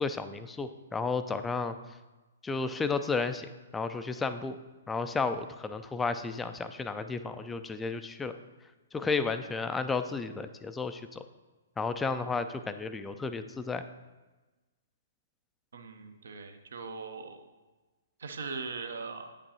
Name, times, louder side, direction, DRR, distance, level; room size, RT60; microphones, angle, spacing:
voice 1, 0.0-1.7 2.4-4.6 4.9-8.4 8.9-11.2 11.8-13.8, left 4 dB, 10° left, 10 dB, 0.3 m, -32 dB
voice 2, 15.7-17.4 18.2-19.3, right 4 dB, 65° right, 6 dB, 0.7 m, -40 dB
8.7 x 5.2 x 2.8 m, 1.2 s
figure-of-eight pair, 120°, 0 cm